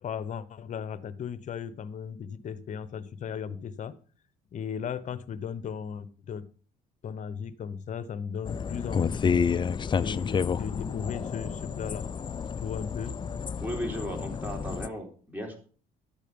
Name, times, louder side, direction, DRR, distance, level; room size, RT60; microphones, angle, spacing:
voice 1, 0.0-4.0 4.5-6.5 7.0-9.5 10.0-12.1 12.6-13.2, left 7 dB, 45° left, 15 dB, 1.0 m, -36 dB
sound 1, 8.4-14.9, left 6 dB, 30° left, 0.5 m, -30 dB
voice 2, 13.6-15.6, equal, 10° right, 1 dB, 4.0 m, -36 dB
12.0 x 8.4 x 5.2 m, 0.40 s
cardioid pair, 110°, 17 cm